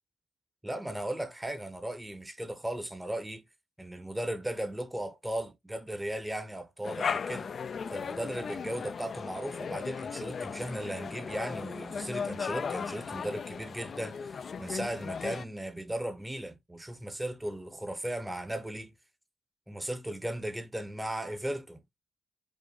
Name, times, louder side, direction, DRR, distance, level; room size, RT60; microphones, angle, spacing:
voice 1, 0.6-3.5 3.8-7.5 7.9-18.9 19.7-21.8, right 1 dB, 10° right, 0.7 m, -36 dB
sound 1, 6.8-15.4, left 6 dB, 45° left, 0.3 m, -37 dB
5.1 x 2.2 x 3.9 m
cardioid pair, 90°, 0 cm